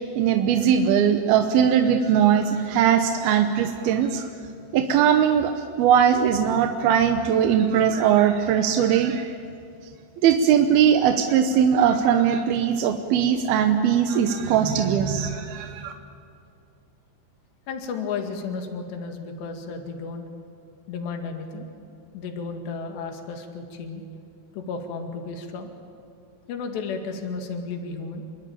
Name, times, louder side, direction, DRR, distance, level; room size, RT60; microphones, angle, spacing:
voice 1, 0.2-4.3 4.7-5.5 5.8-9.3 10.2-15.9, right 8 dB, 70° right, 5 dB, 2.6 m, -20 dB
voice 2, 17.7-20.2 20.9-21.7 22.1-24.0 24.5-25.7 26.5-28.2, left 4 dB, 70° left, 4 dB, 4.3 m, -33 dB
27.5 x 23.0 x 8.8 m, 2.5 s
omnidirectional pair, 5.2 m